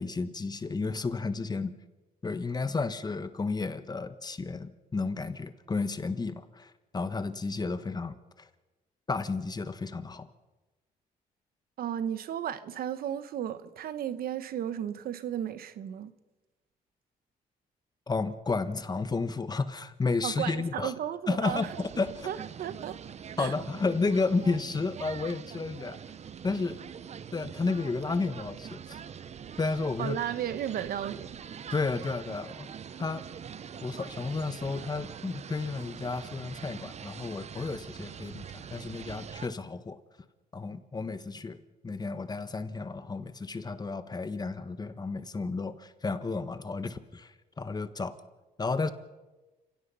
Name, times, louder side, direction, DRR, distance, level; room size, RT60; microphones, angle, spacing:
voice 1, 0.0-1.8 2.2-8.5 9.1-10.3 18.1-20.9 21.3-22.3 23.4-26.0 26.4-26.8 27.3-29.0 29.6-30.2 31.7-32.7 33.0-33.2 33.8-40.0 40.5-48.2 48.6-48.9, left 4 dB, 25° left, 1.3 m, -32 dB
voice 2, 11.8-16.1 20.2-21.8 22.2-23.0 23.4-23.5 30.0-31.4, right 10 dB, 70° right, 1.1 m, -34 dB
sound 1, 21.4-39.5, right 7 dB, 45° right, 0.8 m, -44 dB
29.5 x 17.0 x 5.6 m
cardioid pair, 100°, 16 cm